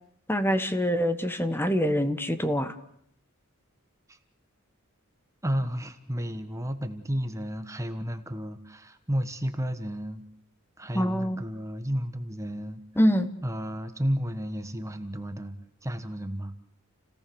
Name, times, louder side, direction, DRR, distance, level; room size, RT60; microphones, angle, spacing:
voice 1, 0.3-2.7 10.9-11.4 13.0-13.3, equal, 10° left, 10 dB, 1.4 m, -25 dB
voice 2, 5.4-10.2 10.8-12.8 13.4-15.6 15.8-16.6, equal, 15° right, 8 dB, 1.3 m, -32 dB
29.5 x 17.5 x 7.1 m, 0.69 s
head